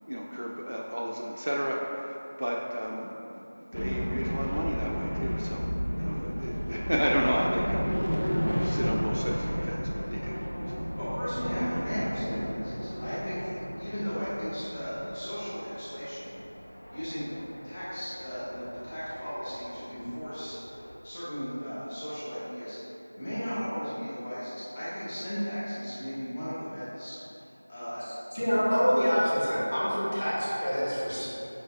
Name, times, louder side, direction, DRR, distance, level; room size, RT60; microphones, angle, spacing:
voice 1, 0.1-11.0, equal, 85° right, -3 dB, 0.3 m, -33 dB
sound 1, 3.7-21.0, equal, 85° left, 0.4 m, -34 dB
voice 2, 11.0-13.5 13.8-16.4 16.9-17.2 17.6-20.6 21.0-27.2 27.7-28.0 28.4-28.7, equal, 5° left, -13 dB, 0.3 m, -36 dB
voice 3, 28.3-31.3, equal, 65° left, -8 dB, 1.0 m, -26 dB
4.9 x 2.4 x 2.4 m, 2.8 s
figure-of-eight pair, 180°, 0 cm